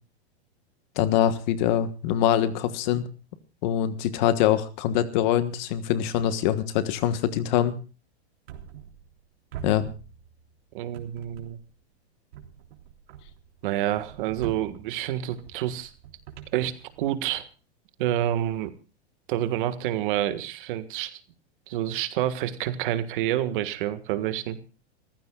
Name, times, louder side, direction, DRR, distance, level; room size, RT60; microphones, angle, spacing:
voice 1, 0.9-3.1 3.6-7.8 9.6-9.8, left 10 dB, 45° left, 11 dB, 1.4 m, -24 dB
sound 1, 8.5-9.2 9.5-10.6 10.9-11.8 12.3-17.4, right 8 dB, 65° right, 3.4 m, -44 dB
voice 2, 10.7-11.6 13.6-15.9 16.5-16.7 17.0-17.5 18.0-18.7 19.3-21.2 21.7-24.6, right 12 dB, 50° right, 10 dB, 1.7 m, -28 dB
28.5 x 15.0 x 2.4 m, 0.34 s
supercardioid pair, 160°, 33 cm